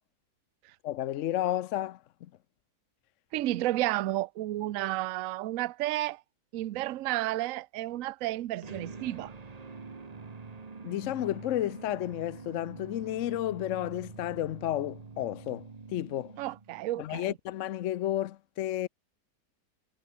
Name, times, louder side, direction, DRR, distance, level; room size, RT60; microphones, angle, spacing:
voice 1, 0.8-2.0 10.8-16.3 17.0-18.9, left 13 dB, 65° left, 0.8 m, -32 dB
voice 2, 3.3-6.2 6.5-9.3 16.4-17.3, right 15 dB, 65° right, 0.9 m, -32 dB
sound 1, 8.6-16.9, right 4 dB, 25° right, 1.2 m, -46 dB
omnidirectional pair, 1.8 m